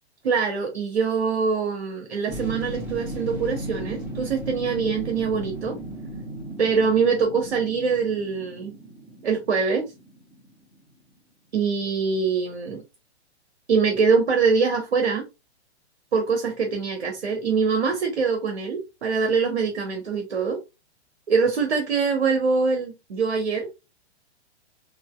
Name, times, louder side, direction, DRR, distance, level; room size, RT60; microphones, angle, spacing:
voice 1, 0.2-5.8 6.6-8.7 9.2-9.8 11.5-12.8 13.7-15.2 16.1-20.6 21.3-23.7, right 5 dB, 60° right, 1.0 m, -23 dB
sound 1, 2.3-10.8 11.1-11.2, right 1 dB, 5° right, 1.0 m, -36 dB
4.1 x 2.8 x 2.2 m
figure-of-eight pair, 115°, 33 cm